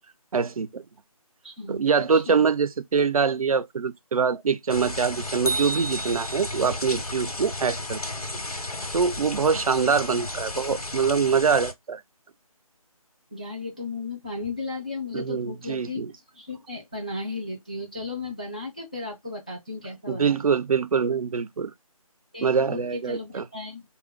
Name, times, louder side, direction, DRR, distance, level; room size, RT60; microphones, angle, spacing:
voice 1, 0.3-0.8 1.7-8.0 8.9-12.0 15.1-16.1 20.1-21.7 22.4-23.5, right 5 dB, 70° right, 0.4 m, -24 dB
voice 2, 1.4-2.4 9.5-9.8 13.3-16.1 16.3-20.5 22.3-23.8, left 3 dB, 15° left, 0.3 m, -35 dB
sound 1, 4.7-11.7, left 2 dB, 90° left, 1.0 m, -34 dB
sound 2, 5.5-6.8, right 2 dB, 70° left, 0.6 m, -31 dB
3.4 x 2.1 x 3.5 m
figure-of-eight pair, 160°, 19 cm